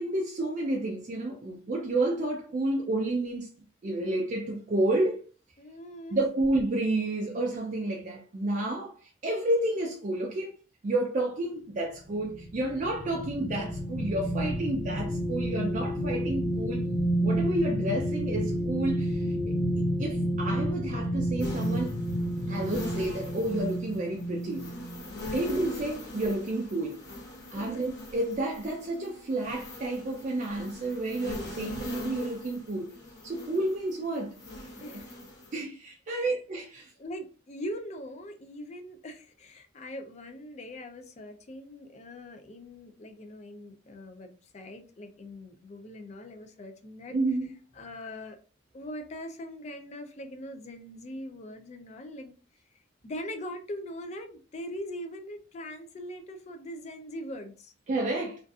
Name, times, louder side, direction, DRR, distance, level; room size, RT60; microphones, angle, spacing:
voice 1, 0.0-3.5 3.8-5.3 6.1-10.5 10.8-16.8 17.2-19.5 20.0-21.9 22.5-24.7 25.3-27.0 27.5-32.9 33.2-34.4 34.9-35.0 35.5-36.9 47.1-47.5 57.9-58.4, right 2 dB, 40° right, 0.4 m, -30 dB
voice 2, 5.6-6.2 25.1-25.4 27.4-27.8 34.8-35.2 36.1-36.4 37.0-47.2 47.8-48.4 48.7-52.3 53.0-57.7, equal, 35° left, 0.4 m, -41 dB
sound 1, 12.1-25.0 25.4-25.6, equal, 10° left, 0.7 m, -30 dB
sound 2, 21.4-35.5, left 2 dB, 65° left, 0.9 m, -42 dB
2.5 x 2.3 x 2.3 m
head